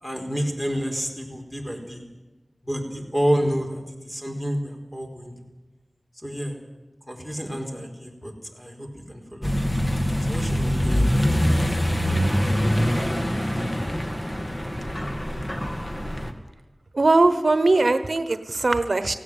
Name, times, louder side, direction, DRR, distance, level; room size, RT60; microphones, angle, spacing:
voice 1, 0.0-2.0 2.6-5.3 6.2-6.6 7.1-9.5 10.3-11.1 13.0-13.1, equal, 10° left, 3 dB, 4.3 m, -29 dB
Accelerating revving vroom, 9.4-16.3, equal, 30° left, 2.0 m, -24 dB
voice 2, 16.9-19.1, right 2 dB, 75° right, 11 dB, 1.0 m, -20 dB
17.5 x 16.0 x 9.3 m, 1.1 s
wide cardioid pair, 60°, 0 cm